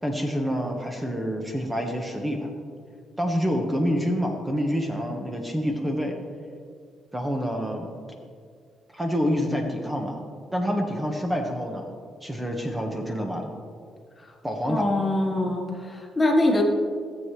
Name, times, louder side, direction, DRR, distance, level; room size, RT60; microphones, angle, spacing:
voice 1, 0.0-2.5 3.2-6.2 7.1-7.9 8.9-10.2 10.5-11.9 12.2-13.6 14.4-14.9 15.3-15.4, equal, 15° right, 2 dB, 1.3 m, -27 dB
voice 2, 14.7-16.6, left 1 dB, 25° left, 1 dB, 1.5 m, -23 dB
17.0 x 7.8 x 3.3 m, 2.1 s
cardioid pair, 90°, 0 cm